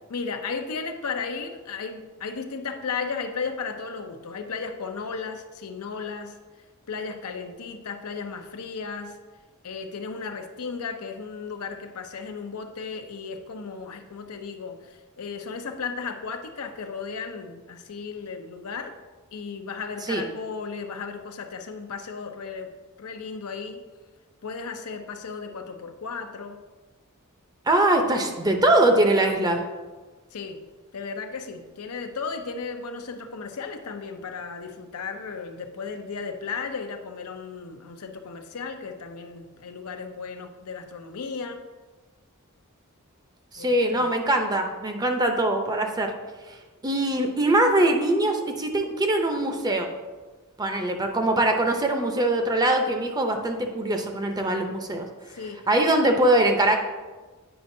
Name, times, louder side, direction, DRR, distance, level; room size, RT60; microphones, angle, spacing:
voice 1, 0.1-6.3 6.9-9.2 9.6-19.0 19.3-22.7 23.0-23.8 24.4-26.6 30.3-30.6 30.9-41.6 43.6-44.1 55.3-55.7, left 5 dB, 90° left, 6 dB, 0.6 m, -35 dB
voice 2, 27.7-29.6 43.5-46.1 46.8-49.9 50.6-55.1 55.7-56.8, right 1 dB, 20° right, 4 dB, 0.6 m, -22 dB
8.8 x 5.2 x 2.6 m, 1.3 s
head